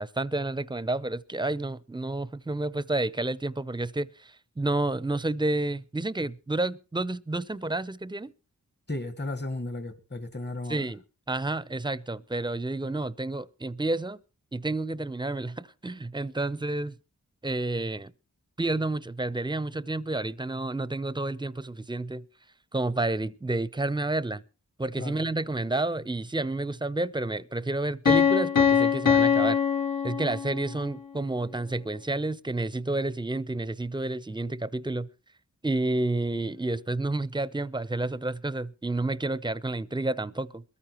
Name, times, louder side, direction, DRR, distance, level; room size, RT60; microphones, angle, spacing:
voice 1, 0.0-8.3 10.7-14.2 14.5-16.9 17.4-18.1 18.6-22.2 22.7-24.4 24.8-29.6 30.0-35.1 35.6-40.6, right 2 dB, 15° right, 0.6 m, -30 dB
voice 2, 8.9-10.9 25.0-25.2, left 2 dB, 30° left, 1.4 m, -34 dB
Piano, 28.1-30.8, left 7 dB, 70° left, 1.1 m, -23 dB
21.5 x 14.0 x 3.0 m
cardioid pair, 45°, 34 cm